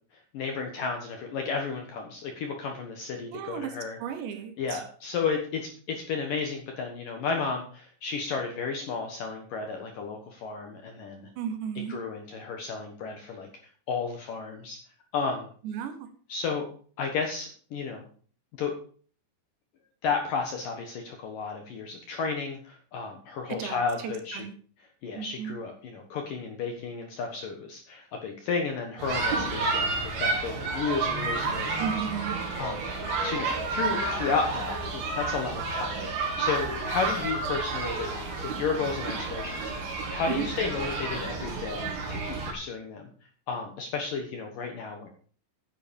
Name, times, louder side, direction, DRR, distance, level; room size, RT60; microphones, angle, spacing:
voice 1, 0.3-4.0 4.6-11.3 11.9-13.5 13.9-14.8 15.1-15.5 16.3-16.7 17.0-18.0 18.6-18.7 20.0-24.5 24.8-31.9 32.6-32.8 33.2-38.1 38.4-39.7 40.1-43.1 43.5-45.1, left 5 dB, 65° left, 3 dB, 2.2 m, -32 dB
voice 2, 3.3-4.8 11.4-12.0 15.6-15.9 23.5-23.8 24.0-24.5 25.1-25.6 31.8-32.4 40.3-40.5, right 8 dB, 70° right, 9 dB, 3.1 m, -34 dB
sound 1, 29.0-42.5, right 3 dB, 55° right, 4.5 m, -31 dB
10.0 x 9.9 x 5.2 m, 0.44 s
omnidirectional pair, 5.6 m